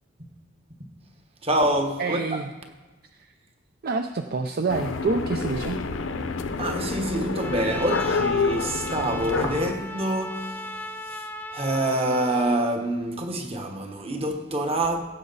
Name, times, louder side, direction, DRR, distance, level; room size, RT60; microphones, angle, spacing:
voice 1, 1.4-2.2 6.6-15.0, right 1 dB, 30° right, 1.2 m, -26 dB
voice 2, 2.0-2.5 3.1-3.3 3.8-5.8, right 3 dB, 50° right, 0.5 m, -27 dB
sound 1, 4.7-9.8, left 4 dB, 70° left, 0.7 m, -28 dB
Trumpet, 7.4-12.6, left 1 dB, 10° left, 0.4 m, -36 dB
16.0 x 7.7 x 4.0 m
head